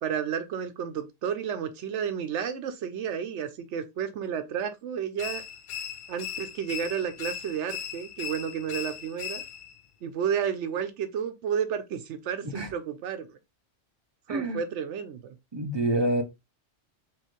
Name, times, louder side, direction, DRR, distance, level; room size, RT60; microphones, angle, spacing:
voice 1, 0.0-5.4 6.1-9.4 10.0-13.3 14.3-15.4, right 8 dB, 80° right, 0.9 m, -31 dB
sound 1, 5.2-9.8, left 9 dB, 60° left, 0.6 m, -38 dB
voice 2, 14.3-14.6 15.5-16.2, right 1 dB, 30° right, 0.6 m, -27 dB
4.6 x 3.1 x 3.0 m
omnidirectional pair, 1.2 m